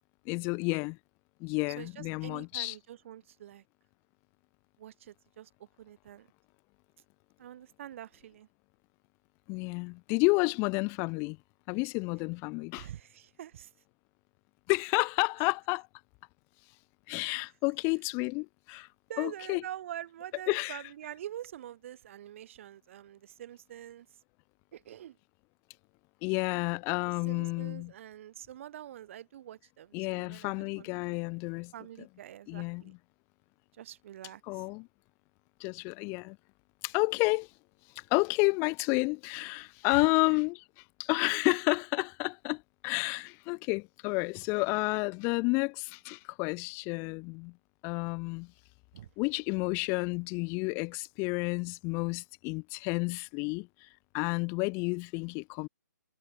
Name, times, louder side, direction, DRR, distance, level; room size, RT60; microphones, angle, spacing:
voice 1, 0.3-1.0 1.4-2.8 9.5-11.4 11.7-12.9 14.7-15.9 17.1-18.9 19.2-19.6 20.5-20.8 26.2-27.9 29.9-31.7 32.5-32.8 34.5-34.9 35.6-36.4 36.8-37.5 38.0-47.5 47.8-48.5 49.2-53.9 54.1-55.7, left 30 dB, 25° left, 2.0 m, -30 dB
voice 2, 1.8-3.6 4.8-6.3 7.4-8.5 12.7-13.7 19.1-24.1 24.7-25.2 27.0-31.2 31.7-32.9 33.7-34.7 39.9-40.1 48.9-49.1, right 11 dB, 40° right, 5.9 m, -45 dB
figure-of-eight pair, 135°, 10 cm